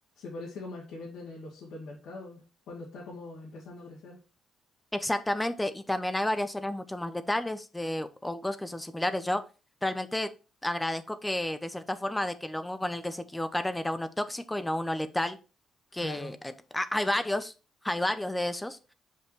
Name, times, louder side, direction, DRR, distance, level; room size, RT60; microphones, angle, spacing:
voice 1, 0.2-4.2 16.0-16.3, left 2 dB, 85° left, -6 dB, 2.2 m, -42 dB
voice 2, 4.9-9.4 9.8-10.3 10.6-15.4 15.9-17.5 17.8-18.8, left 1 dB, 10° left, 12 dB, 0.7 m, -31 dB
6.5 x 5.4 x 3.1 m, 0.33 s
cardioid pair, 90°, 0 cm